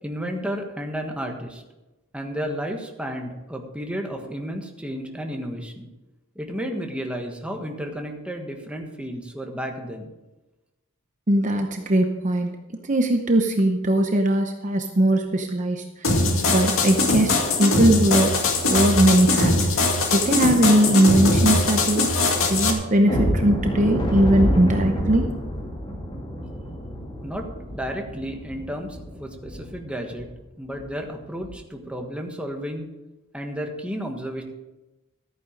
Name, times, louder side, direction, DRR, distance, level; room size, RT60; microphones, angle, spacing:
voice 1, 0.0-1.6 2.1-5.9 6.3-10.1 27.2-27.5 27.7-30.3 30.6-32.9 33.3-34.4, equal, 5° right, 2 dB, 1.4 m, -32 dB
voice 2, 11.3-12.5 12.9-16.1 16.5-18.3 18.7-19.6 20.1-25.3, right 1 dB, 35° right, 4 dB, 0.8 m, -20 dB
sound 1, 16.0-22.7, left 2 dB, 70° left, 2.1 m, -21 dB
sound 2, 23.1-29.8 30.2-30.3 30.7-30.9 31.4-31.5, equal, 25° left, 2.4 m, -28 dB
13.5 x 9.3 x 5.2 m, 1.1 s
head